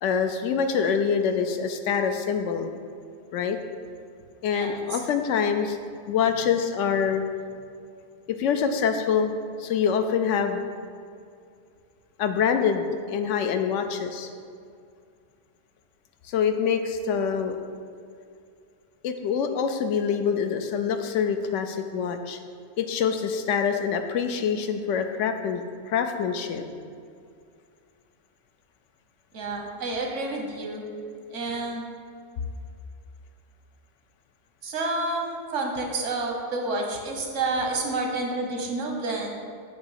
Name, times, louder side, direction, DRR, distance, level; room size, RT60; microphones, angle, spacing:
voice 1, 0.0-2.7 3.3-3.6 4.4-5.8 6.1-7.2 8.4-9.3 9.6-10.6 12.2-14.3 16.3-17.6 19.0-22.4 22.8-26.6, left 7 dB, 80° left, 7 dB, 0.9 m, -25 dB
voice 2, 4.5-5.0 29.3-30.8 31.3-31.9 34.6-39.3, right 2 dB, 90° right, 1 dB, 1.3 m, -29 dB
8.2 x 2.9 x 5.6 m, 2.3 s
omnidirectional pair, 1.2 m